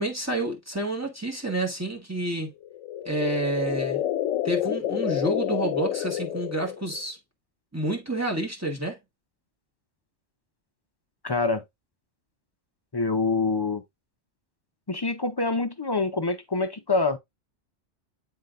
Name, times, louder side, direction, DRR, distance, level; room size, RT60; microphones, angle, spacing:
voice 1, 0.0-2.5 3.0-4.0 4.4-7.2 7.7-9.0, right 2 dB, 15° right, 1.5 m, -29 dB
sound 1, 2.6-7.0, left 11 dB, 80° left, 0.9 m, -29 dB
voice 2, 11.2-11.6 12.9-13.8 14.9-17.2, left 3 dB, 40° left, 0.3 m, -25 dB
9.6 x 3.9 x 2.5 m
omnidirectional pair, 1.3 m